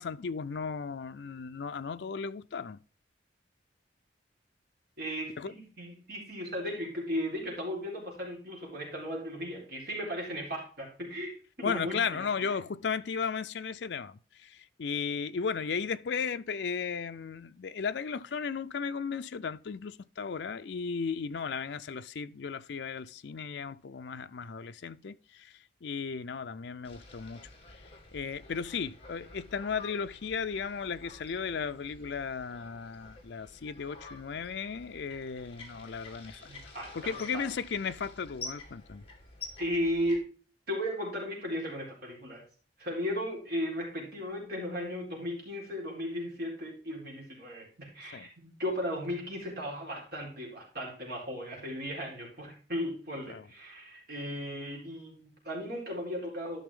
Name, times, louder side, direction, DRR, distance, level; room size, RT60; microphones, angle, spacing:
voice 1, 0.0-2.8 5.4-5.5 11.6-25.5 25.8-27.5 28.1-36.5 36.9-39.0 48.1-48.3 53.3-53.4, left 6 dB, 65° left, 0.4 m, -35 dB
voice 2, 5.0-11.3 11.6-12.5 36.5-37.5 39.6-40.3 40.7-42.4 42.8-56.6, equal, 55° right, 4.1 m, -36 dB
sound 1, 26.8-40.2, left 3 dB, 30° left, 2.2 m, -49 dB
12.0 x 5.9 x 3.6 m
head